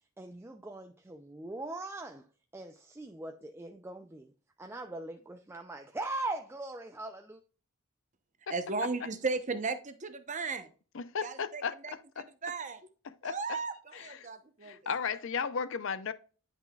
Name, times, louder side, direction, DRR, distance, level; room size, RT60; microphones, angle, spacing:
voice 1, 0.2-2.3 2.5-4.3 4.6-7.4, right 2 dB, 10° right, 0.3 m, -40 dB
voice 2, 8.5-10.7 11.2-12.8 13.2-14.8, right 4 dB, 35° right, 0.7 m, -36 dB
voice 3, 10.9-11.7 12.2-12.3 13.2-13.6 14.6-16.1, left 6 dB, 55° left, 0.5 m, -34 dB
10.0 x 5.7 x 2.3 m
head